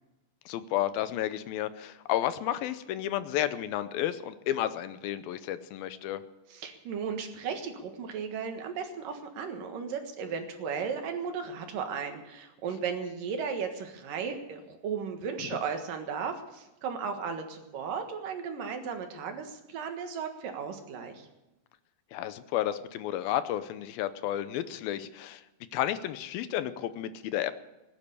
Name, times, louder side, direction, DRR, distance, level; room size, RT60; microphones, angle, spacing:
voice 1, 0.5-6.2 15.5-15.6 22.1-25.4 25.7-27.5, left 12 dB, 90° left, 12 dB, 2.6 m, -32 dB
voice 2, 6.5-21.3, right 6 dB, 70° right, 5 dB, 3.1 m, -35 dB
19.0 x 10.0 x 6.9 m, 1.0 s
omnidirectional pair, 4.2 m